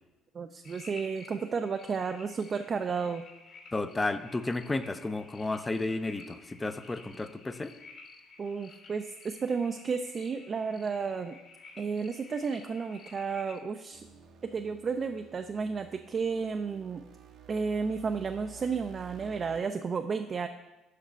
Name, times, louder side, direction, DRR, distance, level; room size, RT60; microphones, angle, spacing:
voice 1, 0.3-3.2 8.4-11.4 11.8-14.1 14.5-17.0 17.5-20.5, right 5 dB, 40° right, 6 dB, 0.4 m, -32 dB
sound 1, 0.6-13.6, left 4 dB, 65° left, 1.8 m, -52 dB
voice 2, 3.7-7.7, left 2 dB, 20° left, 11 dB, 0.5 m, -32 dB
sound 2, 13.9-19.6, right 8 dB, 65° right, 0.7 m, -52 dB
5.2 x 5.0 x 5.6 m, 1.0 s
supercardioid pair, 70°, 0 cm